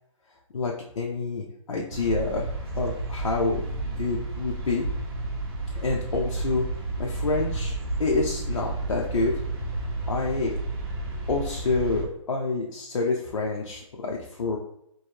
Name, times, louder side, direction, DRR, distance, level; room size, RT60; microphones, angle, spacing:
voice 1, 0.5-2.5 2.7-3.6 4.0-4.9 5.7-6.6 7.0-9.3 10.1-10.6 11.3-14.6, left 3 dB, 85° left, -1 dB, 0.8 m, -28 dB
sound 1, 1.9-12.0, right 2 dB, 45° right, 1.0 m, -31 dB
3.1 x 2.7 x 4.5 m, 0.74 s
hypercardioid pair, 170°, 17 cm